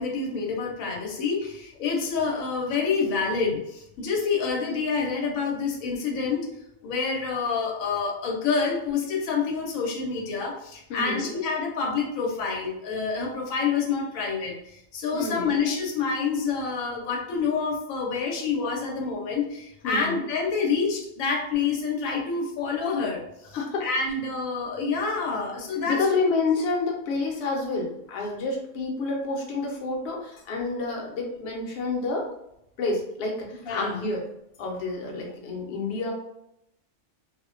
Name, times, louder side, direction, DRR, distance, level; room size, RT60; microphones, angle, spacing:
voice 1, 0.0-6.5 6.8-26.2 33.6-34.0, left 5 dB, 90° left, 0 dB, 1.0 m, -27 dB
voice 2, 10.9-11.3 15.1-15.6 19.8-20.2 23.5-23.8 25.9-32.3 32.8-34.2 34.6-36.1, left 3 dB, 60° left, 0 dB, 0.8 m, -29 dB
2.4 x 2.1 x 2.4 m, 0.79 s
omnidirectional pair, 1.4 m